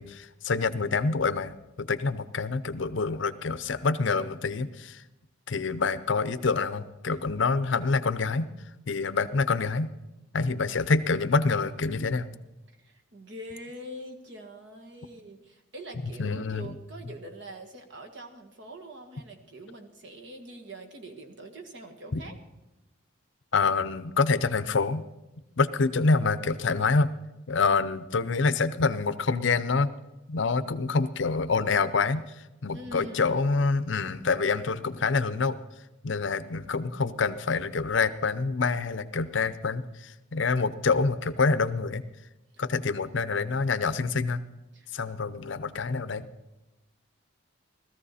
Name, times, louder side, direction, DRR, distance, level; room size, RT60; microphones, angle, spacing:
voice 1, 0.0-5.0 5.5-8.5 8.9-9.9 10.3-12.3 16.2-16.7 23.5-25.0 25.6-27.1 27.5-29.9 30.3-32.2 32.6-35.6 36.0-42.0 42.6-44.4 44.9-46.3, left 4 dB, 65° left, 14 dB, 0.6 m, -26 dB
voice 2, 12.8-22.4 32.7-33.4 42.5-42.6 44.7-44.9, right 1 dB, 60° right, 4 dB, 1.7 m, -44 dB
17.0 x 14.0 x 4.2 m, 1.0 s
head